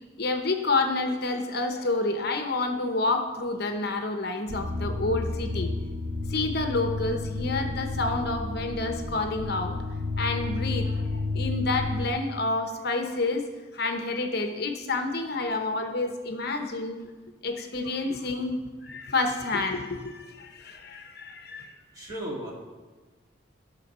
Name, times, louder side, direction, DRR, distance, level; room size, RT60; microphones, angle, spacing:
voice 1, 0.2-5.7 6.3-9.8 10.2-13.4 13.7-17.0 17.4-21.7, left 2 dB, 50° left, 5 dB, 0.9 m, -29 dB
sound 1, 4.5-12.1, left 3 dB, 55° right, 1.6 m, -31 dB
voice 2, 21.9-22.5, equal, 20° right, -3 dB, 2.1 m, -35 dB
13.0 x 6.7 x 5.5 m, 1.3 s
head